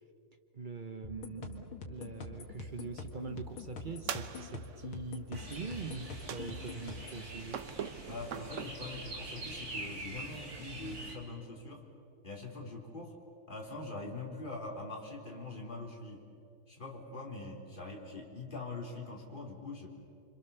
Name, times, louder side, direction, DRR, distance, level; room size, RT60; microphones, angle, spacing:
voice 1, 0.5-7.7, right 4 dB, 75° right, 7 dB, 0.4 m, -43 dB
sound 1, 1.0-7.2, left 4 dB, 80° left, 2.7 m, -45 dB
sound 2, 4.1-4.9 6.3-6.9 7.5-8.7, right 8 dB, 60° right, 0.8 m, -41 dB
sound 3, 5.3-11.2, right 2 dB, 45° right, 3.4 m, -45 dB
voice 2, 8.1-11.8 12.2-13.2 13.5-16.3 16.7-19.9, left 2 dB, 20° left, -1 dB, 3.7 m, -43 dB
27.0 x 26.0 x 7.0 m, 2.7 s
omnidirectional pair, 2.3 m